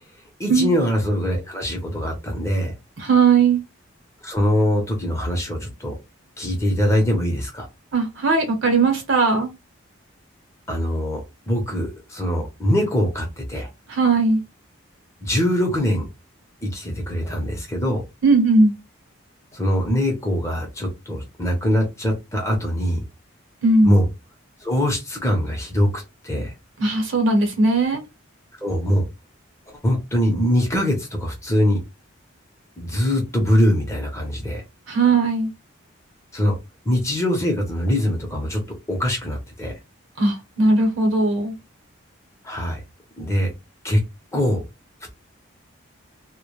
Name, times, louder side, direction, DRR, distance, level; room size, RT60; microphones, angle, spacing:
voice 1, 0.4-2.7 4.2-6.0 6.4-7.6 10.7-13.7 15.2-16.1 16.6-18.0 19.5-23.0 23.8-24.1 24.6-26.5 28.6-29.1 29.8-31.8 32.8-34.6 36.3-36.5 36.8-38.6 38.9-39.7 42.4-42.8 43.2-43.5 43.8-44.0 44.3-44.6, equal, 15° left, 0.6 m, -22 dB
voice 2, 3.0-3.6 7.9-9.5 13.9-14.4 18.2-18.7 23.6-24.0 26.8-28.0 34.9-35.5 40.2-41.5, right 3 dB, 65° right, 0.9 m, -18 dB
2.1 x 2.1 x 3.0 m
head